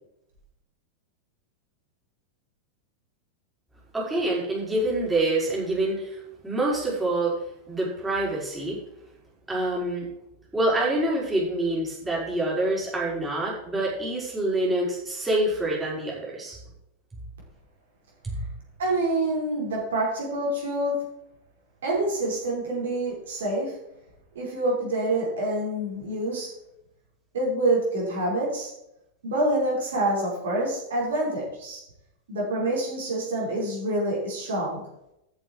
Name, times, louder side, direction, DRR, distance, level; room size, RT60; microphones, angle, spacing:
voice 1, 3.9-7.3 7.7-8.8 9.5-10.1 10.5-16.6 18.2-18.3, right 1 dB, 10° right, -5 dB, 5.4 m, -26 dB
voice 2, 18.8-20.9 21.8-23.8 24.4-26.5 27.3-28.7 29.2-31.8 32.3-34.8, right 1 dB, 60° right, -4 dB, 5.3 m, -26 dB
13.5 x 8.4 x 4.8 m, 0.84 s
figure-of-eight pair, 90°, 0 cm